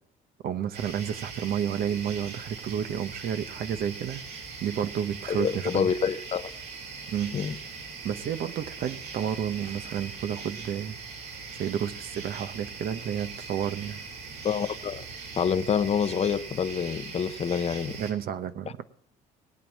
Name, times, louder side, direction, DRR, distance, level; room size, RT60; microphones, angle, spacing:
voice 1, 0.4-4.2 4.6-5.9 7.1-7.4 8.0-10.9 11.5-14.0 18.0-18.8, right 9 dB, 60° right, 0.9 m, -31 dB
sound 1, 0.7-18.1, right 4 dB, 80° right, 5.0 m, -41 dB
voice 2, 5.3-6.5 7.3-7.5 14.4-15.0 15.4-18.0, left 7 dB, 40° left, 0.8 m, -27 dB
19.0 x 8.9 x 7.3 m
cardioid pair, 110°, 17 cm